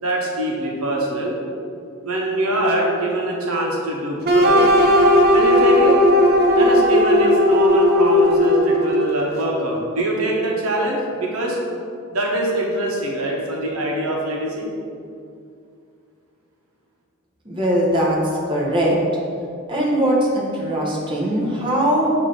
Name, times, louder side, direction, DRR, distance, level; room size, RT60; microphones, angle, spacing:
voice 1, 0.0-1.3 2.0-4.6 5.3-6.0 6.6-11.6 12.1-14.7, right 1 dB, 85° right, -2 dB, 1.1 m, -23 dB
sound 1, 4.2-9.2, left 1 dB, 45° right, 0.6 m, -15 dB
voice 2, 17.4-18.2 18.5-19.0 19.7-22.1, right 1 dB, 20° right, -4 dB, 1.0 m, -20 dB
7.1 x 2.9 x 5.2 m, 2.4 s
head